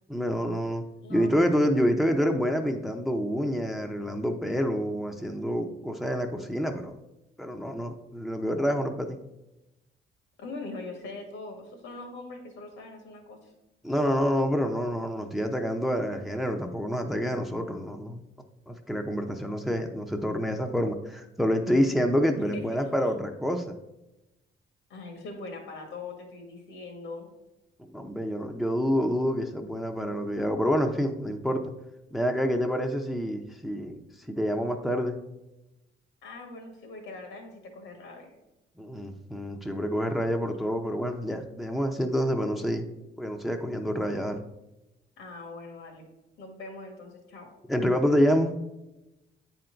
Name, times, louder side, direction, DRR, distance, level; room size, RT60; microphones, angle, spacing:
voice 1, 0.1-6.9 7.4-9.2 13.8-18.2 18.7-23.7 27.8-31.6 32.1-34.0 34.3-35.2 38.8-42.9 43.2-44.4 47.7-48.5, equal, ahead, 4 dB, 0.6 m, -27 dB
voice 2, 1.0-1.7 10.4-13.5 22.5-22.9 24.9-27.3 36.2-38.4 45.2-46.1 46.4-47.5, left 3 dB, 80° left, 3 dB, 1.8 m, -42 dB
8.5 x 4.5 x 3.9 m, 0.95 s
cardioid pair, 90°, 20 cm